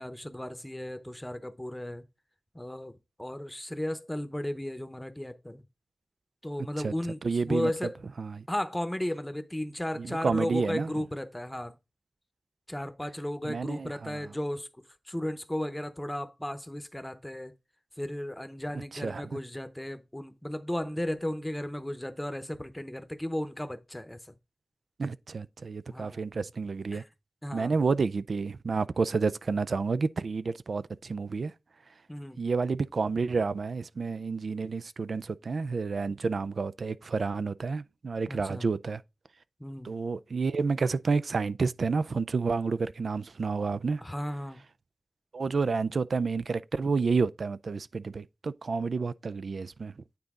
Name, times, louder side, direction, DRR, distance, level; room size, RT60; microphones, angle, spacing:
voice 1, 0.0-2.0 2.5-5.6 6.4-8.0 8.5-11.7 12.7-14.7 15.1-17.5 18.0-24.3 25.9-26.2 26.9-27.0 27.4-27.8 32.1-32.4 38.3-38.7 39.6-39.9 44.0-44.6, left 1 dB, 10° left, 0.8 m, -35 dB
voice 2, 7.2-7.7 8.2-8.5 10.0-11.0 13.4-14.3 18.7-19.4 25.0-27.0 27.5-31.5 32.4-39.0 39.8-44.0 45.3-49.9, right 4 dB, 85° right, 0.3 m, -30 dB
9.2 x 4.0 x 3.6 m
wide cardioid pair, 75°, 0 cm